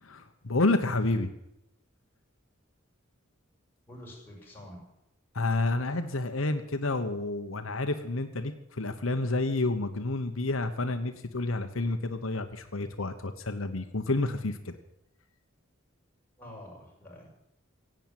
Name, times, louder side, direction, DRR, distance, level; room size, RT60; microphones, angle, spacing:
voice 1, 0.0-1.3 5.3-14.8, left 2 dB, 80° left, 7 dB, 1.2 m, -29 dB
voice 2, 3.8-4.8 16.4-17.2, left 1 dB, 10° left, -3 dB, 6.0 m, -47 dB
16.5 x 9.1 x 9.1 m, 0.86 s
head